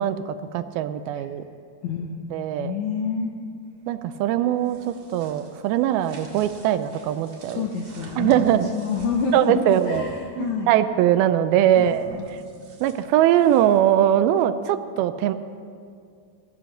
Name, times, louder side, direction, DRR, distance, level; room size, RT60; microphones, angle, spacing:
voice 1, 0.0-1.4 2.3-2.7 3.9-7.6 8.2-8.7 9.3-10.0 10.4-12.1 12.8-15.3, right 11 dB, 85° right, 11 dB, 2.3 m, -21 dB
voice 2, 1.8-3.3 7.5-8.4 8.7-10.7 11.8-12.3, left 5 dB, 80° left, 1 dB, 1.6 m, -28 dB
sound 1, 4.5-10.2 11.6-13.9, right 2 dB, 45° right, 2.3 m, -45 dB
14.0 x 10.0 x 6.4 m, 2.3 s
omnidirectional pair, 4.5 m